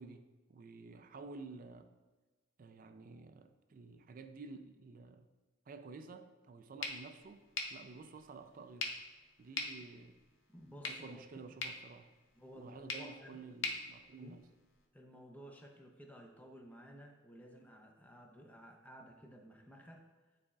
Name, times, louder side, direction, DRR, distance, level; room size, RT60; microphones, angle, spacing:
voice 1, 0.0-2.0 2.6-5.3 5.7-9.0 9.4-10.2 10.8-12.2 12.5-14.5, right 3 dB, 45° right, 8 dB, 0.4 m, -52 dB
sound 1, 6.8-14.9, left 4 dB, 75° left, 0.7 m, -45 dB
voice 2, 10.5-11.5 12.3-13.4 14.2-14.4 14.9-20.1, equal, 10° left, 2 dB, 0.6 m, -55 dB
10.0 x 4.1 x 2.4 m, 1.2 s
head